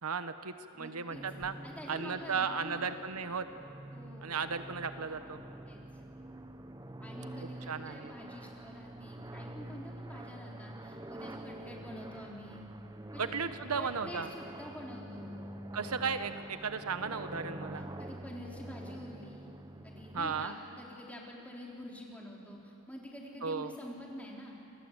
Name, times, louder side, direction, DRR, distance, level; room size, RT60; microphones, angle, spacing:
voice 1, 0.0-1.5 1.9-3.5 4.2-5.4 7.4-8.1 13.2-14.3 15.7-17.8 20.1-20.5 23.4-23.7, right 5 dB, 90° right, 10 dB, 1.0 m, -35 dB
voice 2, 0.7-1.3 1.6-2.9 3.9-4.4 5.7-5.8 7.0-12.6 13.1-13.3 13.7-15.4 17.8-19.5 19.8-24.6, equal, 5° left, -2 dB, 3.7 m, -47 dB
sound 1, 1.1-20.5, right 1 dB, 15° right, 0.8 m, -46 dB
28.0 x 20.0 x 8.1 m, 2.8 s
head